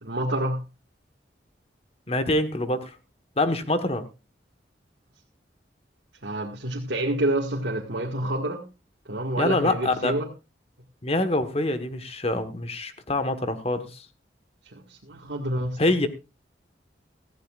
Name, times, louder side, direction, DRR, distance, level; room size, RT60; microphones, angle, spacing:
voice 1, 0.0-0.6 6.2-8.6 9.1-10.3 14.7-15.8, right 1 dB, 75° right, -1 dB, 1.8 m, -28 dB
voice 2, 2.1-3.0 3.4-4.1 9.4-10.1 11.0-14.0 15.8-16.1, left 2 dB, 35° left, 10 dB, 1.3 m, -25 dB
17.5 x 14.5 x 2.5 m, 0.29 s
head